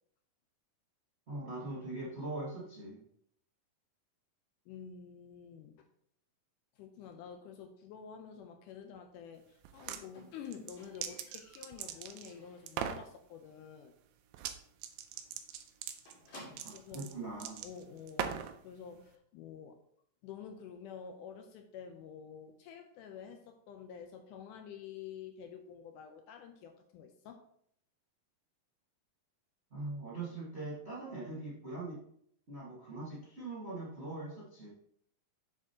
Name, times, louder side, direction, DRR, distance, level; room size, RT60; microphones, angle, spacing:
voice 1, 1.3-3.0 16.6-17.6 29.7-32.0 32.5-34.7, right 2 dB, 60° right, -6 dB, 0.6 m, -42 dB
voice 2, 4.7-5.8 6.8-13.9 16.7-17.1 17.6-19.8 20.2-27.5, left 7 dB, 80° left, 4 dB, 1.9 m, -49 dB
sound 1, 9.6-10.0 10.5-12.3 12.7-13.1 14.3-14.6 14.8-18.6, right 9 dB, 80° right, 2.2 m, -40 dB
Squeak, 10.1-12.9 13.2-13.6 13.9-14.0 14.4-14.5 14.8-14.9 15.1-17.0 17.8-17.9, left 1 dB, 65° left, 3.9 m, -56 dB
7.2 x 6.9 x 2.8 m, 0.68 s
omnidirectional pair, 4.2 m